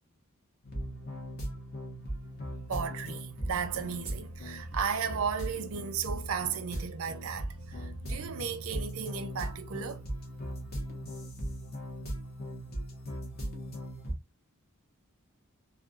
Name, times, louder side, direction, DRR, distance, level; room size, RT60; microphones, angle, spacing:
sound 1, 0.6-14.1, equal, 45° left, 1.1 m, -38 dB
voice 1, 2.7-10.0, right 7 dB, 75° right, 0.5 m, -35 dB
3.3 x 2.3 x 2.4 m
head